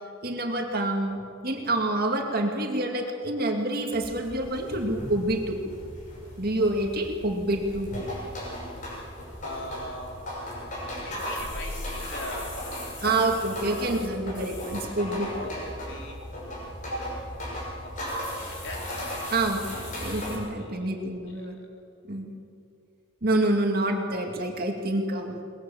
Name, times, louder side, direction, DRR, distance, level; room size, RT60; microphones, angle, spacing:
voice 1, 0.2-5.6 6.4-7.9 13.0-15.3 16.9-17.0 19.3-21.6 22.1-22.3 23.2-25.3, right 1 dB, 45° right, 2 dB, 2.3 m, -27 dB
sound 1, 3.9-20.4, left 1 dB, 40° left, 6.0 m, -36 dB
voice 2, 9.4-10.2 10.9-12.9 13.2-13.9 15.3-16.2 17.8-18.8 20.6-20.9 21.4-21.5, left 1 dB, 60° left, 0 dB, 4.3 m, -41 dB
22.5 x 20.5 x 7.2 m, 2.5 s
head